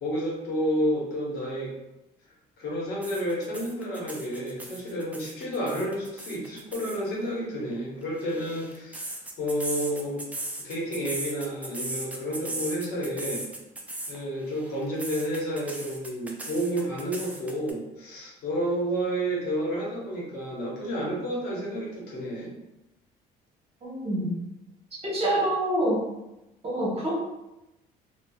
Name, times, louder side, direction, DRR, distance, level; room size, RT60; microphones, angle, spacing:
voice 1, 0.0-1.7 2.6-9.0 9.4-10.3 10.6-13.5 14.1-22.5, equal, 75° left, -4 dB, 0.9 m, -30 dB
sound 1, 3.0-7.0 8.0-14.2 14.5-17.7, right 1 dB, 10° right, 0.3 m, -37 dB
voice 2, 23.8-24.3 25.0-26.0 26.6-27.1, right 1 dB, 35° right, -5 dB, 1.1 m, -26 dB
2.7 x 2.2 x 2.3 m, 0.93 s
cardioid pair, 110°, 17 cm